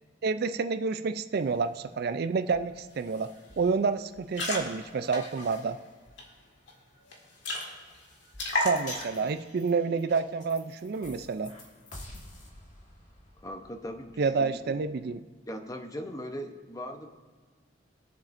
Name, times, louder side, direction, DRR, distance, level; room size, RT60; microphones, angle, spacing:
voice 1, 0.2-3.3 3.6-5.8 8.5-11.5 14.2-15.2, right 4 dB, 55° right, 11 dB, 0.4 m, -29 dB
sound 1, 2.5-2.6 2.9-3.2 3.5-3.7 4.2-6.2 6.7-6.8 7.1-7.2 7.4-8.0 8.3-9.2, left 1 dB, 70° left, 2.0 m, -33 dB
sound 2, 8.7-15.1, left 1 dB, 40° left, 1.9 m, -48 dB
voice 2, 13.4-14.8 15.5-17.1, equal, 20° left, 6 dB, 0.8 m, -39 dB
21.0 x 7.3 x 2.6 m, 1.5 s
head